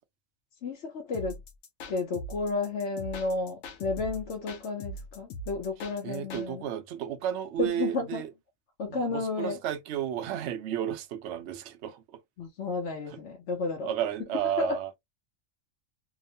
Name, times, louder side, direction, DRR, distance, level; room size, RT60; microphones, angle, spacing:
voice 1, 0.6-1.4 1.9-6.6 7.6-8.2 8.8-9.6 12.4-13.9 14.6-14.8, left 3 dB, 65° left, 1.0 m, -32 dB
sound 1, 1.1-6.5, equal, 85° left, 1.1 m, -41 dB
voice 2, 6.0-8.3 8.9-12.0 13.8-14.9, right 10 dB, 65° right, 0.8 m, -32 dB
2.9 x 2.1 x 2.6 m
omnidirectional pair, 1.4 m